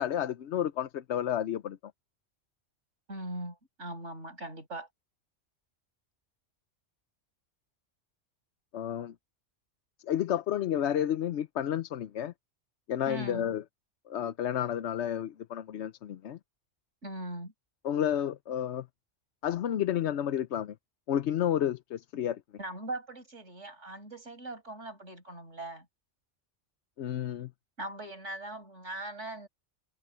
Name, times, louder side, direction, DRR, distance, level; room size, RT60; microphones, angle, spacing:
voice 1, 0.0-1.9 8.7-9.1 10.0-12.3 12.9-13.6 14.1-16.4 17.8-18.9 19.4-20.8 21.1-22.4 27.0-27.5, left 10 dB, 70° left, 0.9 m, -31 dB
voice 2, 3.1-4.9 13.1-13.5 17.0-17.5 22.6-25.9 27.8-29.5, right 1 dB, 75° right, 6.7 m, -40 dB
omnidirectional pair, 1.3 m